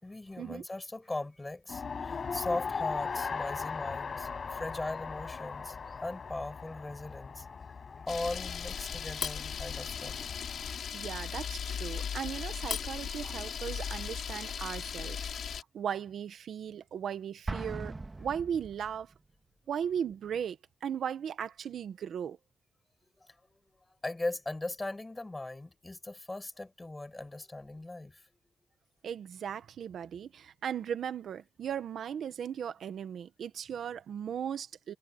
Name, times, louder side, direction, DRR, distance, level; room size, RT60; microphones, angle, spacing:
voice 1, 0.0-7.5 8.1-10.2 23.2-23.3 24.0-28.2, left 2 dB, 20° left, 6.1 m, -39 dB
Race car auto racing, 1.7-10.8, left 5 dB, 50° left, 5.4 m, -39 dB
Camera, 8.1-15.6, left 7 dB, 70° left, 4.0 m, -37 dB
voice 2, 10.9-15.2 15.5-19.1 19.7-22.4 29.0-34.9, right 8 dB, 75° right, 1.5 m, -37 dB
Explosion, 17.5-19.1, right 3 dB, 25° right, 2.2 m, -39 dB
cardioid pair, 90°, 0 cm